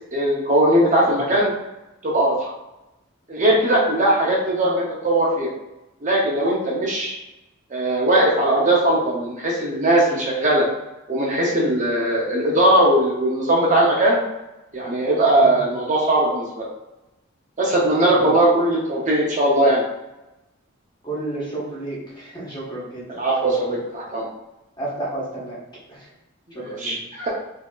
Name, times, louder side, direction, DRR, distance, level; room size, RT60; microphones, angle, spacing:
voice 1, 0.1-1.5 2.0-2.5 3.3-5.5 6.0-7.2 7.7-10.7 11.1-14.2 14.7-16.7 17.6-19.8 23.1-24.3 26.6-27.3, right 1 dB, 35° right, -3 dB, 0.6 m, -19 dB
voice 2, 18.0-18.4 21.0-23.2 24.8-25.6 25.9-26.1 26.5-27.0, right 2 dB, 20° left, -7 dB, 1.2 m, -32 dB
4.3 x 2.7 x 2.3 m, 0.97 s
head